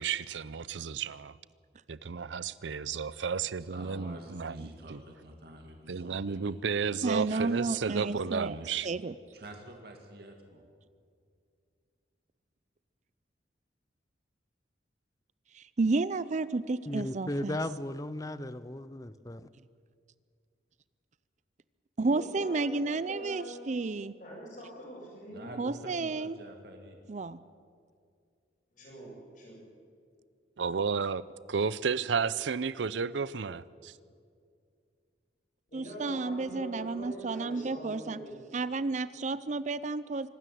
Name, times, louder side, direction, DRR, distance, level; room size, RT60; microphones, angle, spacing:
voice 1, 0.0-1.4 1.9-5.0 5.9-8.9 30.6-31.2 31.5-33.9, right 5 dB, 90° right, 18 dB, 0.6 m, -32 dB
voice 2, 3.6-6.6 7.2-8.2 8.5-8.9 9.3-10.6 25.3-27.0, right 1 dB, 60° right, 2 dB, 2.2 m, -48 dB
voice 3, 7.0-8.6 8.8-9.1 15.5-17.6 22.0-24.1 25.6-26.4 27.1-27.4 35.7-38.2 38.5-40.3, right 3 dB, 40° right, 16 dB, 0.5 m, -31 dB
voice 4, 16.9-19.5, left 1 dB, 20° left, 15 dB, 0.6 m, -36 dB
voice 5, 22.0-23.5 24.2-25.5 28.7-29.6 35.7-38.3, right 1 dB, 45° left, -3 dB, 7.9 m, -44 dB
24.5 x 13.0 x 9.2 m, 2.2 s
head